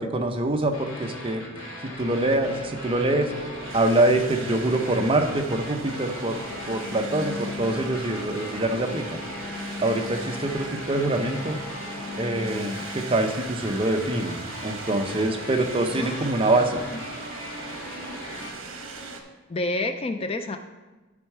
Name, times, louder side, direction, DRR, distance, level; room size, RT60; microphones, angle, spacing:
voice 1, 0.0-1.4 1.8-3.3 3.7-6.4 6.7-9.2 9.8-11.6 12.2-14.4 14.6-16.8, right 2 dB, 25° right, 5 dB, 0.6 m, -24 dB
sound 1, 0.7-18.5, left 1 dB, 80° left, 2.8 m, -40 dB
sound 2, 2.0-19.2, right 3 dB, 70° right, 0.9 m, -39 dB
sound 3, 6.3-12.9, left 3 dB, 5° right, 2.9 m, -39 dB
voice 2, 15.9-16.6 16.9-17.0 19.5-20.6, left 2 dB, 25° left, 7 dB, 0.3 m, -30 dB
11.0 x 4.5 x 4.6 m, 1.2 s
head